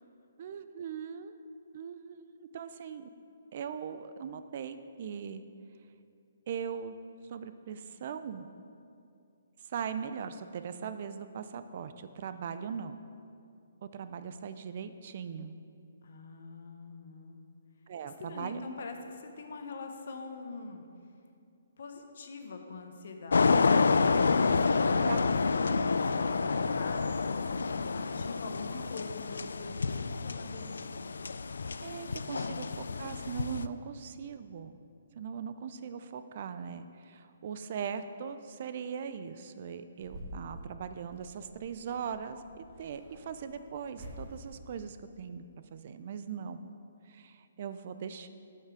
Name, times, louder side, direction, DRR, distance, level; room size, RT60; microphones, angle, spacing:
voice 1, 0.4-1.3 1.7-3.1 3.5-5.4 6.5-7.0 7.3-8.5 9.7-13.0 13.8-15.6 17.9-18.6 25.0-25.2 31.8-32.7 33.0-34.8 35.2-45.4 45.7-46.6 47.1-48.3, right 7 dB, 40° right, 11 dB, 0.4 m, -40 dB
voice 2, 16.0-17.4 18.0-20.9 21.8-23.7 24.0-31.1 32.3-32.6, left 3 dB, 55° left, 5 dB, 1.0 m, -44 dB
sound 1, 23.3-33.7, left 4 dB, 90° left, 0.3 m, -29 dB
recorder in A bag, 40.0-44.9, equal, 25° right, 1.4 m, -49 dB
8.3 x 5.7 x 6.0 m, 2.5 s
hypercardioid pair, 165°, 0 cm